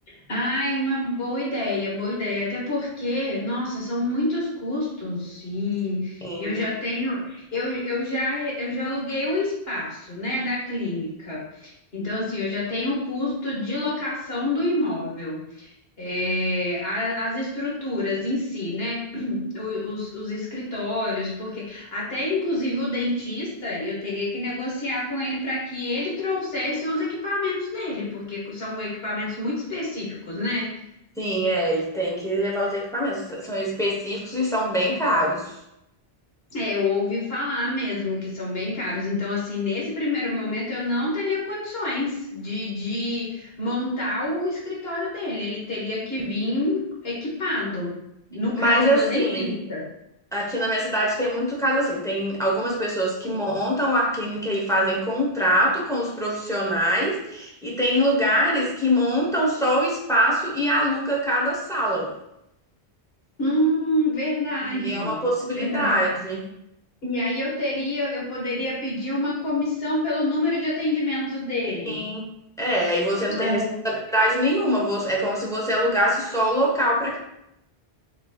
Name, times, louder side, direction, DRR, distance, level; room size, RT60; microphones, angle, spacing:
voice 1, 0.1-15.7 16.0-30.7 36.5-47.9 48.3-49.8 63.4-65.2 65.5-65.9 67.0-72.1 73.3-73.7, left 1 dB, 70° left, -5 dB, 1.7 m, -27 dB
voice 2, 6.2-6.6 31.2-35.5 46.4-46.5 48.5-49.6 50.3-62.1 64.6-66.5 71.9-72.3 72.6-73.6 74.1-77.2, equal, 5° left, -4 dB, 0.9 m, -23 dB
5.8 x 3.3 x 2.3 m, 0.82 s
omnidirectional pair, 1.1 m